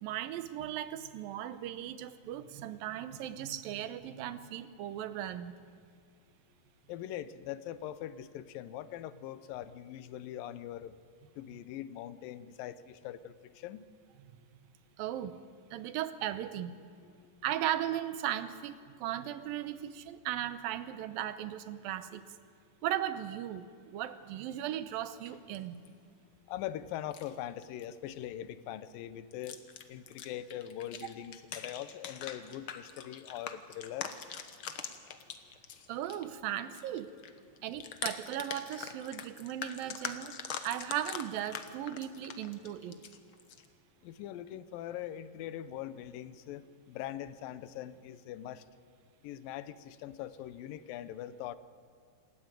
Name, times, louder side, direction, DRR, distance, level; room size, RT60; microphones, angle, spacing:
voice 1, 0.0-5.5 15.0-15.4 15.7-16.8 17.4-22.2 22.8-25.8 35.9-37.1 37.6-40.3 40.6-43.0, right 11 dB, 90° right, 12 dB, 2.7 m, -37 dB
voice 2, 6.9-10.9 11.4-13.9 17.0-17.3 26.5-29.6 29.9-34.1 44.0-48.6 49.2-51.6, left 11 dB, 85° left, 14 dB, 2.5 m, -42 dB
sound 1, 25.2-25.9 27.0-27.3 27.6-27.9 28.2-28.5 29.3-36.3 36.6-43.7, left 7 dB, 65° left, 1.3 m, -43 dB
27.0 x 14.0 x 9.1 m, 2.1 s
omnidirectional pair, 4.0 m